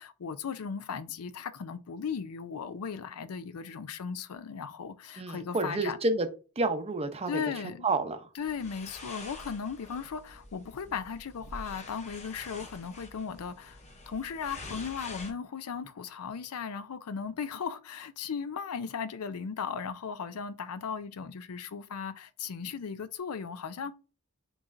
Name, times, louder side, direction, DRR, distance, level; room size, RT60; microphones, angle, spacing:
voice 1, 0.0-6.0 7.3-7.9 8.4-13.8 14.1-23.9, left 6 dB, 75° left, 0.5 m, -37 dB
voice 2, 5.2-6.3 6.6-8.3, right 2 dB, 30° right, 0.6 m, -30 dB
sound 1, 8.4-15.3, left 2 dB, 30° left, 0.7 m, -46 dB
6.0 x 3.1 x 2.5 m
head